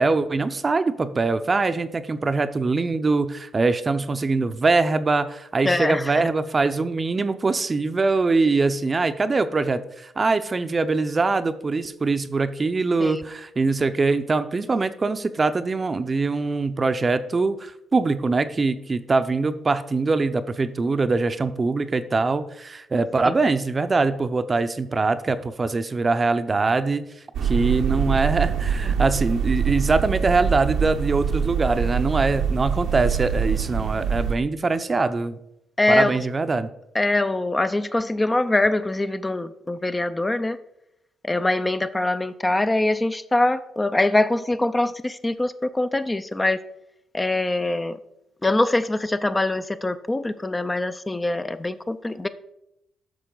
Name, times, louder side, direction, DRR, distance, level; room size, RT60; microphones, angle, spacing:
voice 1, 0.0-27.1 27.4-35.4 35.9-36.7, right 3 dB, 30° right, 11 dB, 0.6 m, -23 dB
voice 2, 5.6-6.3 13.0-13.2 23.3-23.4 35.8-36.1 36.9-40.6 41.2-46.6 47.1-48.0 48.4-52.3, left 2 dB, 15° left, 11 dB, 0.4 m, -23 dB
sound 1, 27.3-34.3, right 7 dB, 75° right, 0.8 m, -24 dB
9.8 x 6.3 x 3.9 m, 0.84 s
cardioid pair, 90°, 0 cm